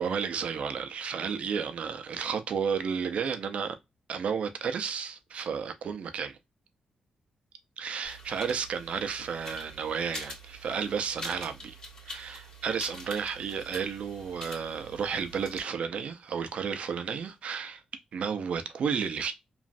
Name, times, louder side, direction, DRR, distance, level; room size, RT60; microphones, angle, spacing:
voice 1, 0.0-3.8 4.1-6.4 7.8-11.7 12.1-17.8 18.1-19.3, right 6 dB, 65° right, 0.5 m, -32 dB
sound 1, 8.0-15.6, left 1 dB, 45° left, 1.5 m, -45 dB
3.0 x 2.5 x 2.5 m
cardioid pair, 105°, 2 cm